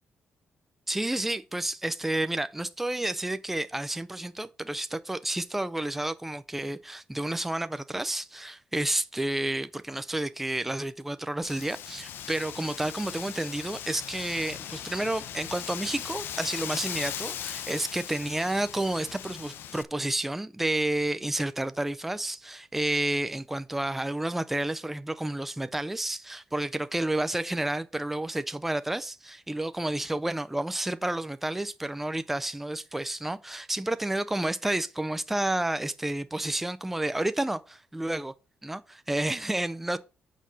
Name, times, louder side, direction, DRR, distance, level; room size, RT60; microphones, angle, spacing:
voice 1, 0.9-38.3 38.6-40.0, right 1 dB, 5° right, 0.5 m, -30 dB
Wind, 11.4-19.8, left 10 dB, 75° left, 0.6 m, -39 dB
6.5 x 5.3 x 6.1 m
cardioid pair, 130°, 4 cm